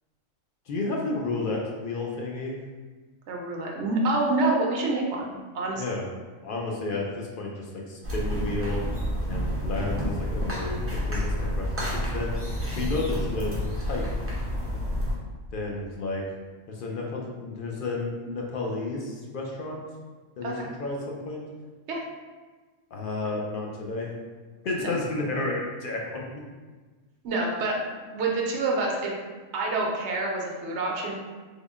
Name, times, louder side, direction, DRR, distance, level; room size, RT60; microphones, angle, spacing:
voice 1, 0.7-2.6 5.8-6.1 6.4-8.8 9.3-10.8 11.1-12.3 12.7-13.5 13.8-14.1 15.5-16.2 16.7-19.8 20.4-20.5 20.8-21.4 22.9-24.1 24.6-26.4, left 2 dB, 60° left, -1 dB, 0.6 m, -31 dB
voice 2, 3.3-5.9 20.4-20.7 21.9-22.0 24.8-24.9 27.2-29.1 29.5-31.1, right 2 dB, 65° right, -1 dB, 0.8 m, -27 dB
sound 1, 8.0-15.1, equal, 20° right, 0.4 m, -29 dB
3.6 x 2.1 x 3.5 m, 1.4 s
omnidirectional pair, 1.3 m